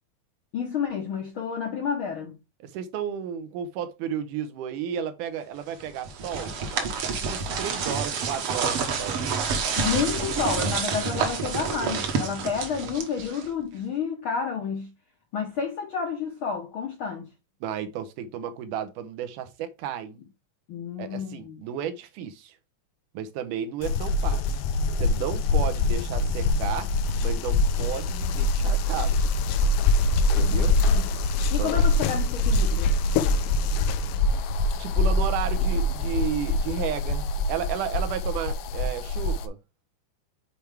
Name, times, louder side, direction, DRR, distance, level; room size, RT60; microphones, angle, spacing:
voice 1, 0.5-2.4 9.8-14.9 15.3-17.3 20.7-21.6 30.5-31.2 31.5-32.9, left 6 dB, 70° left, 1.2 m, -30 dB
voice 2, 2.6-9.2 17.6-20.2 21.0-22.5 23.1-24.6 25.0-26.9 27.2-29.2 30.3-30.8 31.6-31.8 34.8-39.6, right 8 dB, 80° right, 2.3 m, -33 dB
sound 1, 5.8-13.6, right 5 dB, 60° right, 1.7 m, -28 dB
sound 2, 23.8-39.5, left 2 dB, 90° left, 2.3 m, -24 dB
7.0 x 4.5 x 3.4 m
omnidirectional pair, 3.7 m